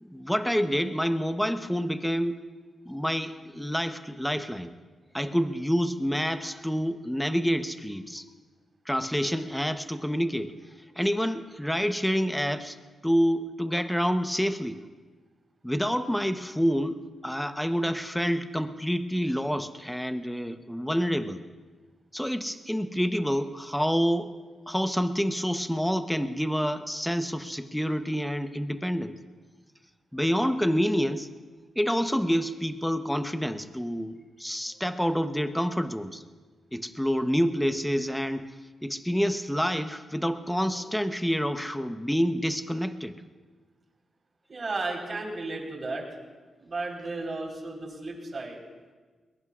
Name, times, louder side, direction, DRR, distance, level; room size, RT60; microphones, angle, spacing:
voice 1, 0.0-2.4 2.9-4.7 5.1-8.2 8.9-10.6 11.0-12.8 13.0-14.8 15.6-21.4 22.1-24.3 24.7-29.2 30.1-31.3 31.8-36.2 36.7-38.5 38.8-43.2, equal, 5° left, 9 dB, 0.9 m, -28 dB
voice 2, 44.5-46.1 46.6-48.6, right 3 dB, 45° right, 0 dB, 4.2 m, -34 dB
22.0 x 21.5 x 2.5 m, 1.4 s
cardioid pair, 80°, 0 cm